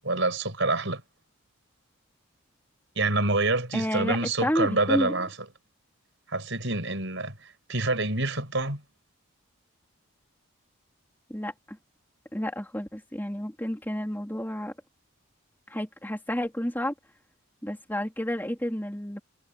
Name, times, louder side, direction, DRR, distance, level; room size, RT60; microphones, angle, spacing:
voice 1, 0.0-1.0 3.0-5.3 6.3-8.8, right 2 dB, 55° right, 6.3 m, -27 dB
voice 2, 3.7-5.1 11.3-11.8 12.3-14.7 15.7-16.9 17.6-19.2, equal, 10° left, 3.4 m, -30 dB
head